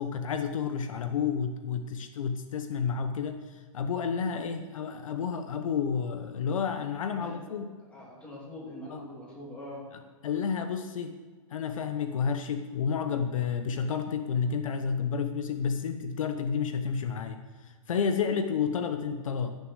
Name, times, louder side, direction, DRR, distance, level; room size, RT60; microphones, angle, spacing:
voice 1, 0.0-7.7 8.9-9.0 10.2-11.2 11.5-17.4 17.9-19.5, left 6 dB, 70° left, 8 dB, 1.0 m, -30 dB
voice 2, 7.2-9.9, left 1 dB, 5° left, -6 dB, 3.0 m, -44 dB
14.5 x 6.8 x 6.4 m, 1.4 s
hypercardioid pair, 170°, 18 cm